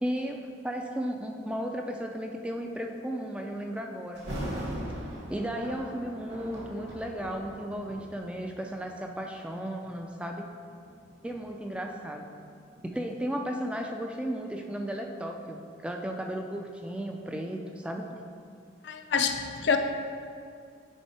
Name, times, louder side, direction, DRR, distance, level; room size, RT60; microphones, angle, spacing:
voice 1, 0.0-4.2 5.3-10.5 11.2-12.3 12.8-18.1, equal, 5° right, 2 dB, 0.3 m, -34 dB
Thunder, 4.1-9.1 9.8-10.0 10.6-13.5 13.8-13.9, equal, 60° right, 1.5 m, -40 dB
voice 2, 18.8-19.8, left 6 dB, 60° left, 6 dB, 0.5 m, -27 dB
9.4 x 3.7 x 4.3 m, 2.3 s
head